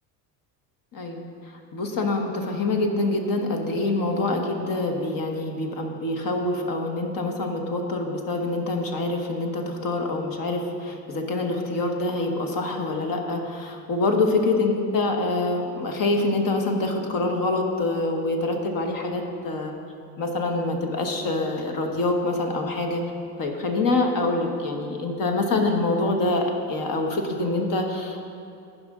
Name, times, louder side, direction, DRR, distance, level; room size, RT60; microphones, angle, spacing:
voice 1, 0.9-1.2 1.7-19.7 20.2-23.0 23.4-28.2, left 2 dB, 45° left, 3 dB, 1.5 m, -25 dB
14.5 x 5.3 x 3.7 m, 2.5 s
supercardioid pair, 95°, 47 cm